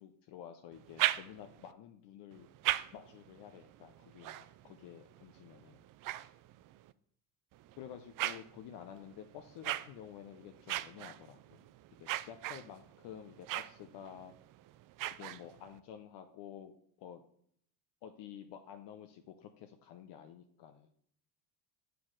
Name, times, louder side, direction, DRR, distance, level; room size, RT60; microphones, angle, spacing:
voice 1, 0.0-2.5 2.9-5.8 7.8-11.6 12.0-14.3 15.2-16.7 17.0-17.2 18.0-20.9, left 9 dB, 55° left, 6 dB, 0.9 m, -51 dB
sound 1, 0.7-1.7 2.3-6.9 7.5-15.8, right 14 dB, 45° right, 0.4 m, -40 dB
7.1 x 4.7 x 6.3 m, 0.64 s
supercardioid pair, 90°, 49 cm